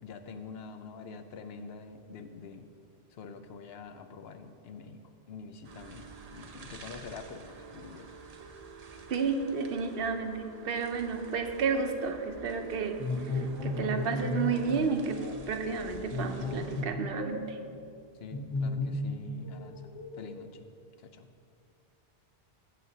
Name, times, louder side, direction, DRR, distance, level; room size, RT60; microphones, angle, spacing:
voice 1, 0.0-2.7 3.1-5.0 5.3-8.1 18.2-19.8 20.2-20.7 21.0-21.3, left 5 dB, 70° left, 8 dB, 0.8 m, -46 dB
sound 1, 5.6-16.8, right 5 dB, 45° right, 0.6 m, -49 dB
voice 2, 9.1-13.0 13.3-17.6, right 5 dB, 65° right, 6 dB, 0.9 m, -31 dB
sound 2, 13.0-14.6 15.1-15.3 16.1-17.6 18.3-19.2 19.4-20.3, left 2 dB, 25° left, 1.0 m, -34 dB
14.5 x 7.5 x 2.8 m, 2.4 s
omnidirectional pair, 1.1 m